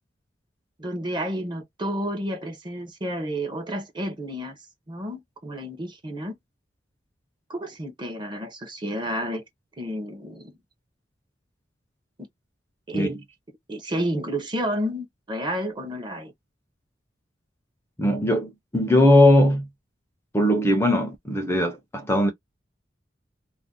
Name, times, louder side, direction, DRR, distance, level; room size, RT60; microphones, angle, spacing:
voice 1, 0.8-4.6 4.9-6.3 7.5-9.4 9.8-10.6 12.9-13.1 13.7-16.3, equal, 25° right, 0.7 m, -30 dB
voice 2, 18.0-19.7 20.3-22.3, left 1 dB, 15° left, 0.5 m, -19 dB
2.5 x 2.0 x 3.6 m
head